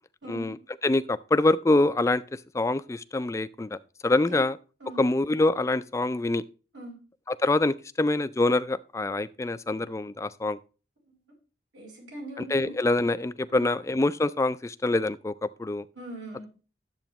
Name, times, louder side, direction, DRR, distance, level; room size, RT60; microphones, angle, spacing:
voice 1, 0.8-3.8 4.0-4.6 5.0-6.4 7.3-10.6 12.4-15.8, left 2 dB, 15° left, 0.3 m, -25 dB
voice 2, 11.7-12.7 13.5-13.7 16.0-16.5, right 1 dB, 75° right, 4.4 m, -41 dB
10.5 x 7.7 x 2.9 m
head